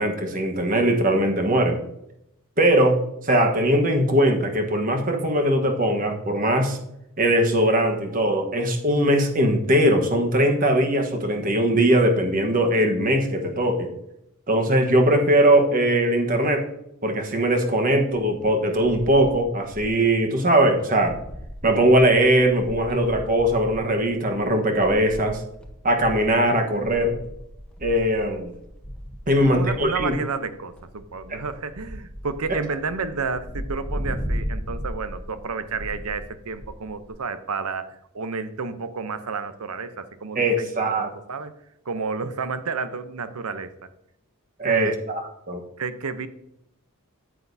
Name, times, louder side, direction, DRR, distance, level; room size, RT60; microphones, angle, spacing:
voice 1, 0.0-1.8 2.6-3.0 3.2-6.8 7.2-13.9 14.5-16.6 17.0-21.1 21.6-25.4 25.8-27.2 27.8-28.5 29.3-30.1 31.3-31.4 40.3-41.1 44.6-45.6, right 1 dB, 40° right, 4 dB, 1.2 m, -20 dB
sound 1, 18.1-20.1 20.4-20.5 20.8-37.1, equal, 5° left, 1.0 m, -37 dB
voice 2, 29.3-37.9 38.1-41.5 41.9-43.7 44.6-45.0 45.8-46.3, right 4 dB, 75° right, 12 dB, 0.7 m, -31 dB
9.3 x 8.2 x 2.7 m, 0.80 s
head